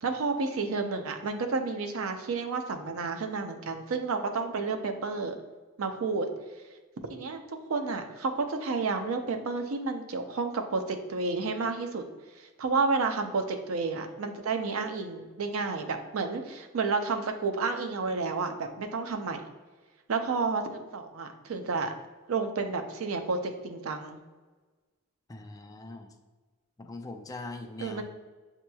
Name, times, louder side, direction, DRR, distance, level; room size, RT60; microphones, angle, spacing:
voice 1, 0.0-5.4 5.8-6.3 7.1-7.4 7.7-12.0 12.4-19.4 20.1-21.9 22.3-24.2 27.8-28.0, right 4 dB, 75° right, 6 dB, 0.5 m, -31 dB
voice 2, 25.3-26.1 26.8-28.0, left 2 dB, 15° left, 5 dB, 0.3 m, -41 dB
7.4 x 2.9 x 2.3 m, 1.3 s
head